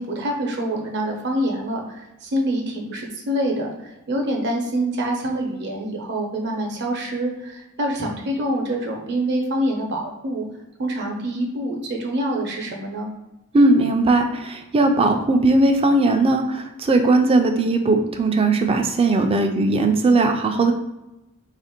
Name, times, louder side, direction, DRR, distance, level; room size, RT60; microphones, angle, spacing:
voice 1, 0.0-3.7 4.1-10.5 10.8-13.1, right 1 dB, 50° right, 1 dB, 0.7 m, -26 dB
voice 2, 13.5-20.7, right 2 dB, 25° right, 5 dB, 0.3 m, -18 dB
2.9 x 2.5 x 4.3 m, 0.94 s
head